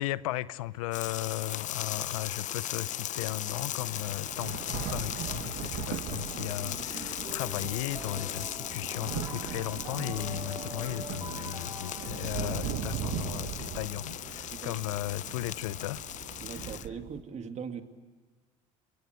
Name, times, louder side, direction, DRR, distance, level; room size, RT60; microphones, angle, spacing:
voice 1, 0.0-16.0 16.4-16.8, left 15 dB, 85° left, 0.7 m, -36 dB
sound 1, 0.7-0.8 1.4-1.5 2.8-2.9 3.2-17.2, right 10 dB, 60° right, 1.5 m, -40 dB
sound 2, 0.9-16.9, left 12 dB, 45° left, 0.7 m, -38 dB
sound 3, 6.2-13.2, right 1 dB, 20° right, 2.7 m, -46 dB
voice 2, 16.4-17.8, right 6 dB, 40° right, 2.5 m, -40 dB
27.5 x 23.0 x 8.1 m
hypercardioid pair, 80°, 17 cm